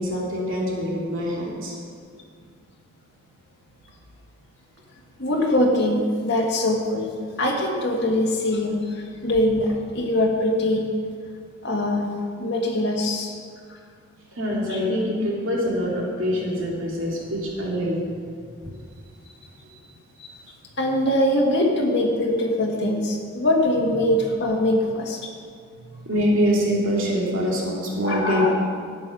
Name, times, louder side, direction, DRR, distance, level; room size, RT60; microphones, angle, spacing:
voice 1, 0.0-1.8 14.4-18.1 26.0-28.5, equal, 65° right, -3 dB, 2.9 m, -24 dB
voice 2, 5.2-7.1 7.4-10.9 11.6-13.3 14.7-14.8 20.2-20.3 20.7-25.2 28.0-28.5, left 1 dB, 55° left, -2 dB, 2.3 m, -22 dB
13.0 x 8.9 x 6.4 m, 2.1 s
head